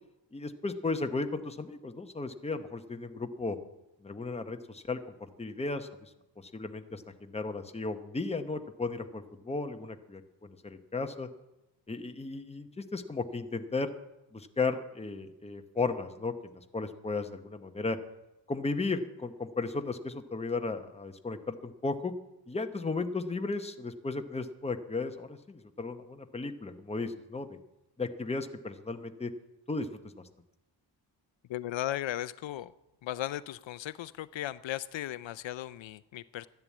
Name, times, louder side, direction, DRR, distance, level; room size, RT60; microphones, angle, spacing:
voice 1, 0.3-3.6 4.0-6.1 6.5-11.3 11.9-13.9 14.3-18.0 18.5-22.1 22.5-27.6 28.0-29.3 29.7-29.9, left 3 dB, 15° left, 7 dB, 0.8 m, -35 dB
voice 2, 31.5-32.7 33.0-36.5, left 13 dB, 75° left, 16 dB, 0.5 m, -36 dB
12.5 x 10.5 x 8.4 m, 0.95 s
wide cardioid pair, 145°, 46 cm